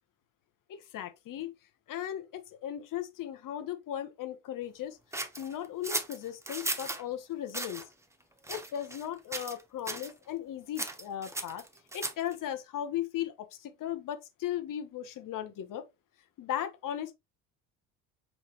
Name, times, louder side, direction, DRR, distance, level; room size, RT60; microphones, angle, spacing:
voice 1, 0.7-1.5 1.9-5.0 5.4-7.8 8.5-11.6 11.9-13.3 13.6-15.8 16.4-17.1, left 11 dB, 45° left, 1.0 m, -37 dB
sound 1, 5.1-7.0 7.5-7.8 8.4-9.1 9.3-9.6 9.9-10.1 10.8-12.3, right 2 dB, 5° right, 0.6 m, -36 dB
5.0 x 2.7 x 3.0 m
hypercardioid pair, 60°, 44 cm